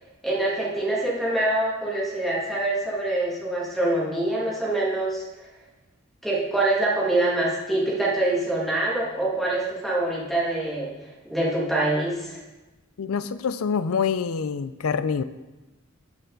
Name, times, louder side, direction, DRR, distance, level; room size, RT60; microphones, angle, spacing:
voice 1, 0.2-5.2 6.2-10.9 11.3-12.4, right 2 dB, ahead, -5 dB, 2.2 m, -25 dB
voice 2, 13.0-15.2, left 6 dB, 80° left, 13 dB, 0.5 m, -26 dB
13.0 x 6.7 x 3.9 m, 1.1 s
head